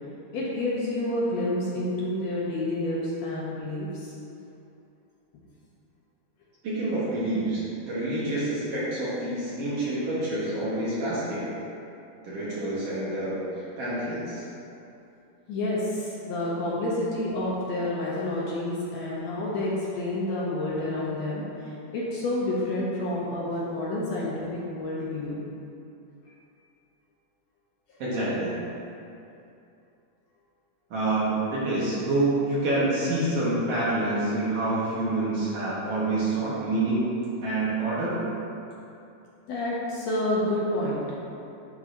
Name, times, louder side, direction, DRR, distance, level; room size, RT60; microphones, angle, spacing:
voice 1, 0.3-4.1 15.5-21.4 21.9-25.4 39.5-41.2, left 1 dB, 70° left, -6 dB, 1.8 m, -29 dB
voice 2, 6.6-11.5 12.2-14.4 28.0-28.5 30.9-37.1 37.4-38.2, right 2 dB, 60° right, -8 dB, 2.0 m, -27 dB
11.0 x 3.8 x 2.6 m, 2.7 s
omnidirectional pair, 3.5 m